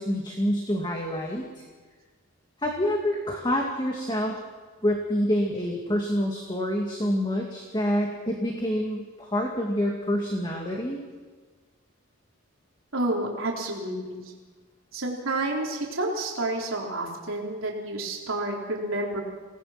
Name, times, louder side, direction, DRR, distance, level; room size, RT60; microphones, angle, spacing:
voice 1, 0.0-1.5 2.6-4.4 4.8-11.0, equal, 20° left, 0 dB, 2.4 m, -27 dB
voice 2, 12.9-14.3 14.9-19.2, right 2 dB, 65° right, -2 dB, 4.1 m, -30 dB
28.5 x 19.0 x 6.0 m, 1.4 s
head